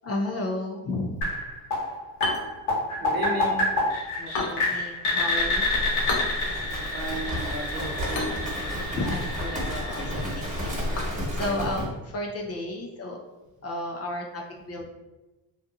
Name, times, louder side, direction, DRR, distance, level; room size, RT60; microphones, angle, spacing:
voice 1, 0.0-1.2 4.2-5.7 9.0-13.2 13.6-14.8, left 2 dB, 35° left, 0 dB, 0.5 m, -33 dB
sound 1, 1.2-11.0, left 2 dB, 85° left, 1.2 m, -29 dB
sound 2, 2.1-12.2, left 3 dB, 65° left, 0.7 m, -38 dB
voice 2, 3.0-3.7 6.7-8.4, right 2 dB, 50° right, 0 dB, 0.8 m, -34 dB
Livestock farm animals working animals, 5.4-11.8, equal, 15° right, 1.3 m, -32 dB
2.7 x 2.3 x 2.6 m, 1.1 s
supercardioid pair, 70°, 46 cm